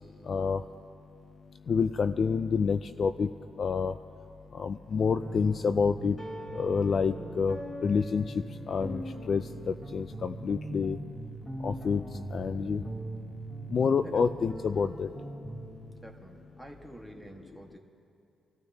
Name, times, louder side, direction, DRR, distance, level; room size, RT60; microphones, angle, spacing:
voice 1, 0.3-0.6 1.7-3.3 3.6-3.9 4.5-6.2 6.5-8.2 8.7-11.0 11.6-12.0 12.3-12.8 13.7-15.1, left 5 dB, 50° left, 11 dB, 0.3 m, -28 dB
sound 1, 5.2-15.7, right 1 dB, 20° left, 3.5 m, -40 dB
voice 2, 16.0-17.8, right 1 dB, ahead, 2 dB, 1.5 m, -48 dB
25.5 x 14.0 x 2.8 m, 2.6 s
cardioid pair, 110°, 0 cm